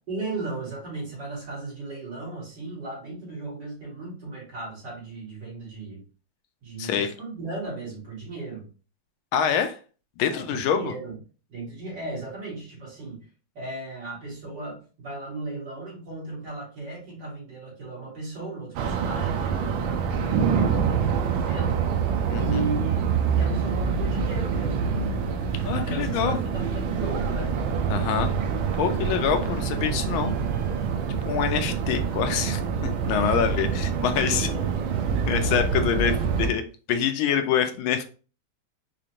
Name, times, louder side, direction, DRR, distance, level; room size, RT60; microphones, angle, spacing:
voice 1, 0.1-6.0 6.6-8.7 10.3-11.2 11.5-13.2 13.5-21.8 22.3-24.9 25.7-27.6 31.5-31.7 33.0-33.5 34.3-35.3, right 3 dB, 60° right, 2.6 m, -36 dB
voice 2, 6.8-7.1 9.3-9.8 10.2-10.9 22.3-22.6 25.6-26.4 27.9-28.3 28.8-30.3 31.2-34.5 35.3-36.6 36.9-38.0, left 8 dB, 80° left, 1.4 m, -25 dB
sound 1, 18.8-36.5, right 6 dB, 80° right, 1.4 m, -26 dB
4.9 x 2.5 x 2.8 m
omnidirectional pair, 2.2 m